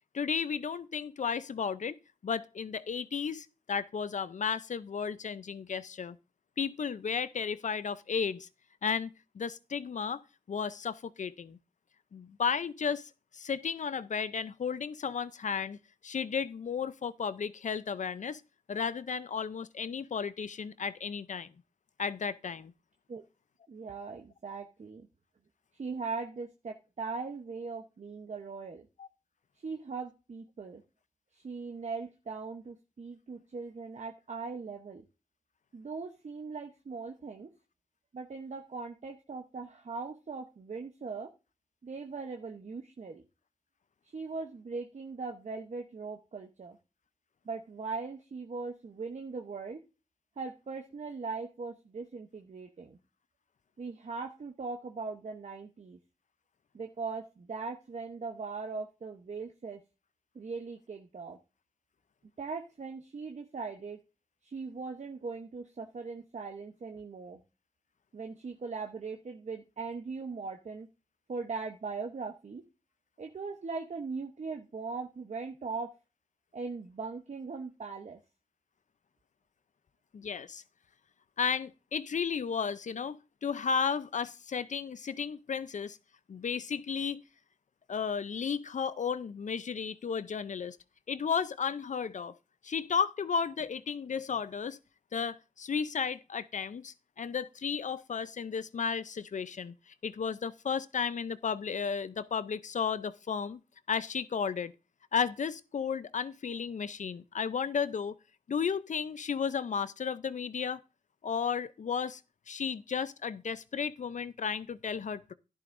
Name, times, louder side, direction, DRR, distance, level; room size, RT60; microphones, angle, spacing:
voice 1, 0.1-1.9 2.2-6.2 6.6-8.5 8.8-10.2 10.5-11.6 12.1-18.4 18.7-21.5 22.0-22.7 29.0-29.1 80.1-80.6 81.4-86.0 86.3-87.2 87.9-90.8 91.1-92.3 92.6-94.8 95.1-103.6 103.9-104.7 105.1-108.1 108.5-110.8 111.2-112.2 112.5-115.3, left 6 dB, 75° left, 0.6 m, -33 dB
voice 2, 23.7-25.1 25.8-28.9 29.6-30.8 31.4-35.0 35.7-37.5 38.1-41.3 41.8-43.2 44.1-46.8 47.5-49.8 50.4-53.0 53.8-56.0 56.7-59.8 60.3-61.4 62.4-64.0 64.4-67.4 68.1-70.9 71.3-72.6 73.2-75.9 76.5-78.2, right 4 dB, 65° right, 0.9 m, -40 dB
12.0 x 10.5 x 2.6 m
cardioid pair, 40°, 13 cm